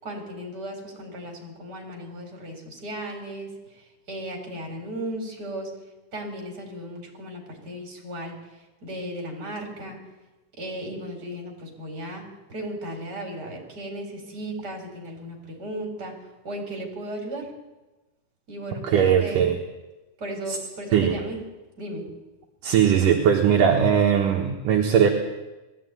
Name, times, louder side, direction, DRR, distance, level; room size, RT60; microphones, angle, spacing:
voice 1, 0.0-5.7 6.1-10.0 10.6-16.1 16.4-17.5 18.5-19.5 20.2-21.4 21.8-22.1, right 1 dB, 20° right, 2 dB, 4.5 m, -36 dB
voice 2, 18.9-19.6 20.5-20.6 20.9-21.2 22.6-25.1, right 8 dB, 65° right, 1 dB, 2.3 m, -19 dB
19.5 x 14.5 x 9.5 m, 1.1 s
omnidirectional pair, 5.3 m